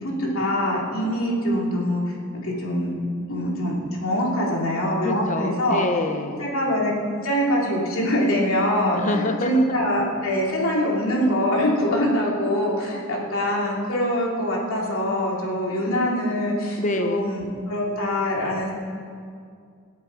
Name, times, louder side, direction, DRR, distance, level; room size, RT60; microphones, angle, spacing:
voice 1, 0.0-2.1 2.4-2.9 3.3-5.8 6.4-6.9 7.2-18.7, equal, 75° left, -3 dB, 3.2 m, -24 dB
voice 2, 5.0-6.5 9.0-9.8 16.8-17.3, left 2 dB, 35° left, 7 dB, 0.9 m, -26 dB
23.0 x 8.5 x 4.8 m, 2.3 s
head